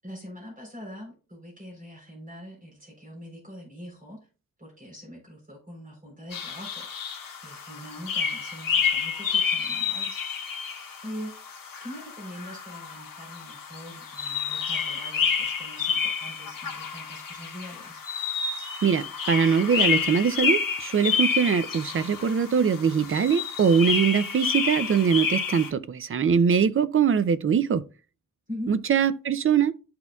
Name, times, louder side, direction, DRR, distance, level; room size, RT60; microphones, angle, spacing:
voice 1, 0.0-4.3 4.6-6.9 7.4-10.1 11.0-11.3 11.8-18.0 28.5-28.7, equal, 25° right, 3.8 m, -42 dB
sound 1, 6.3-25.7, left 6 dB, 80° left, 1.3 m, -29 dB
voice 2, 18.8-27.8 28.7-29.7, right 7 dB, 40° right, 0.5 m, -22 dB
12.0 x 4.3 x 2.3 m
wide cardioid pair, 155°, 33 cm